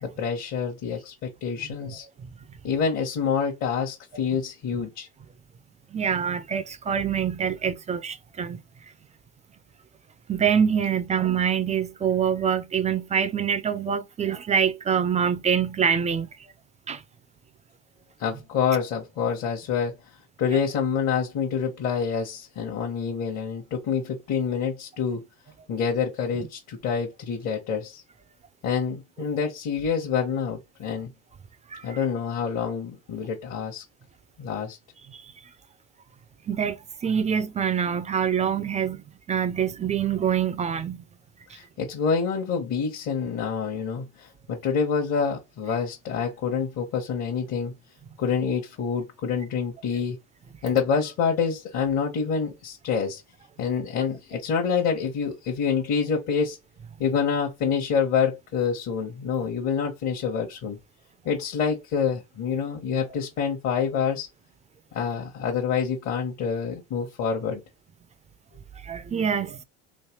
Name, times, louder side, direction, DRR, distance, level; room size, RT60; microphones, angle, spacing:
voice 1, 0.0-2.0 2.6-5.1 18.2-19.9 20.4-25.2 25.7-28.0 28.6-31.1 31.8-33.8 34.4-34.8 41.5-47.7 48.2-50.2 50.6-53.2 53.6-56.6 57.0-60.8 61.2-64.3 64.9-67.6, left 6 dB, 55° left, 1.1 m, -27 dB
voice 2, 5.9-8.6 10.3-16.3 16.9-17.0 31.7-32.0 35.1-35.2 36.5-41.0 63.0-63.2 68.8-69.6, right 7 dB, 20° right, 0.4 m, -25 dB
3.2 x 2.8 x 2.9 m
hypercardioid pair, 80°, 33 cm